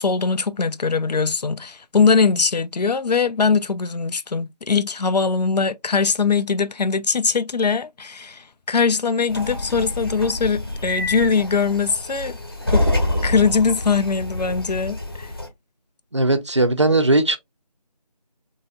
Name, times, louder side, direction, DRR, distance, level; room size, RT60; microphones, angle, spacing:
voice 1, 0.0-12.4 12.7-12.9 13.2-15.3, left 5 dB, 80° left, 0.4 m, -21 dB
sound 1, 9.3-15.5, left 1 dB, 35° left, 0.8 m, -27 dB
voice 2, 16.1-17.4, right 2 dB, 45° right, 0.4 m, -18 dB
2.9 x 2.7 x 2.3 m
figure-of-eight pair, 170°, 21 cm